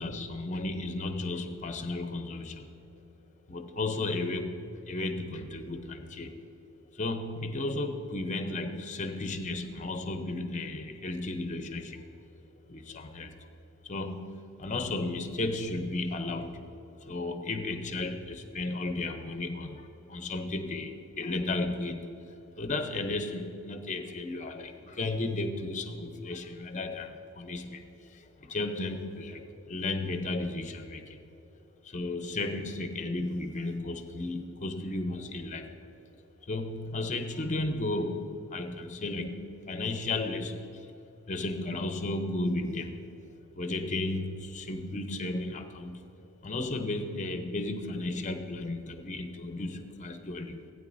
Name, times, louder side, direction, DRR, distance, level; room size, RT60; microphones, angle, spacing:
voice 1, 0.0-2.8 3.5-6.4 6.9-12.1 12.7-13.5 13.8-31.2 31.8-35.7 36.4-40.9 41.3-43.1 43.5-46.1 46.4-50.7, left 2 dB, 35° left, 7 dB, 0.7 m, -34 dB
16.0 x 9.2 x 2.6 m, 2.9 s
head